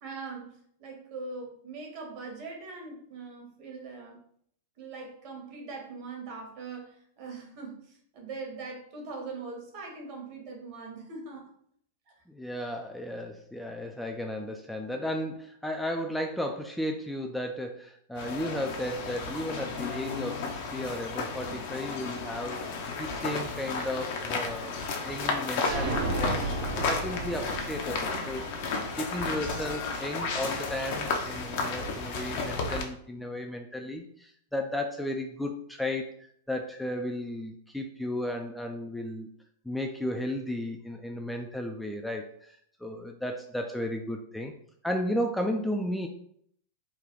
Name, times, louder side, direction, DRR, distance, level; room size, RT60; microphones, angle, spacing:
voice 1, 0.0-4.2 4.8-7.8 8.1-11.4, right 4 dB, 50° right, 0 dB, 1.2 m, -41 dB
voice 2, 12.3-22.6 23.0-24.8 25.0-26.5 26.8-28.4 28.9-36.1 36.5-39.3 39.7-44.5 44.8-46.1, left 1 dB, ahead, 2 dB, 0.3 m, -34 dB
sound 1, 18.2-32.8, left 4 dB, 55° left, 0.6 m, -33 dB
sound 2, 25.6-29.3, right 2 dB, 65° right, 1.0 m, -33 dB
3.3 x 2.2 x 3.7 m, 0.66 s
hypercardioid pair, 100°, 0 cm